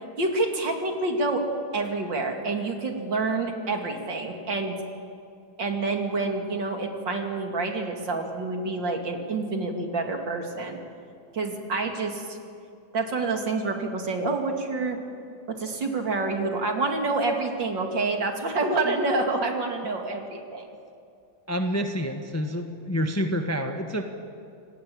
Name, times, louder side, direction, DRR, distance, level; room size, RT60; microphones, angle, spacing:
voice 1, 0.2-1.4 1.7-4.7 5.6-10.8 11.3-12.4 12.9-15.0 15.5-20.7, right 3 dB, 65° right, 3 dB, 3.2 m, -27 dB
voice 2, 21.5-24.0, equal, 10° left, 5 dB, 1.2 m, -28 dB
28.0 x 19.0 x 8.7 m, 2.4 s
omnidirectional pair, 2.2 m